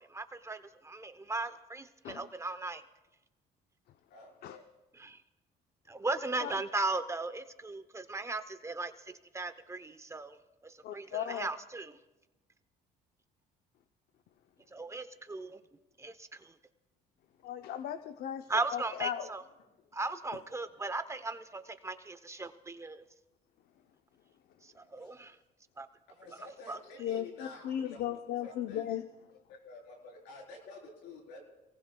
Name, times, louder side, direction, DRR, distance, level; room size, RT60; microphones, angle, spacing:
voice 1, 0.0-2.8 5.0-5.2 5.9-8.9 9.3-10.4 10.6-12.0 14.7-15.6 16.0-16.5 18.5-19.4 19.9-23.1 24.6-25.3 25.8-25.9 26.7-26.8, right 3 dB, 15° right, 10 dB, 0.8 m, -37 dB
voice 2, 4.1-4.6 26.1-28.0 28.4-28.8 29.5-31.4, left 2 dB, 90° left, 0 dB, 4.2 m, -50 dB
voice 3, 10.8-11.5 17.4-19.3 27.0-29.0, left 10 dB, 65° left, 9 dB, 0.7 m, -36 dB
28.0 x 18.5 x 2.3 m, 1.0 s
cardioid pair, 110°, 17 cm